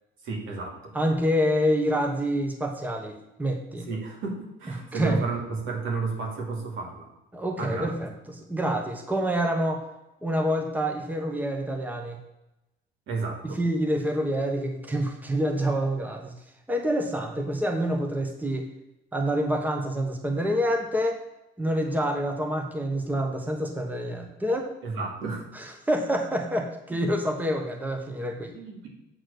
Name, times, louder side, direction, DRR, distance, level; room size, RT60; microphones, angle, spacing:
voice 1, 0.2-1.0 3.9-7.1 7.6-7.9 13.1-13.6 24.8-25.4 26.9-27.0 28.5-28.9, right 4 dB, 80° right, -1 dB, 2.5 m, -32 dB
voice 2, 0.9-3.9 4.9-5.2 7.3-9.8 10.2-12.2 13.6-16.3 16.7-18.7 19.1-21.2 21.6-24.7 25.5-28.5, equal, 10° right, 3 dB, 1.2 m, -27 dB
7.9 x 4.2 x 6.7 m, 0.92 s
cardioid pair, 95°, 20 cm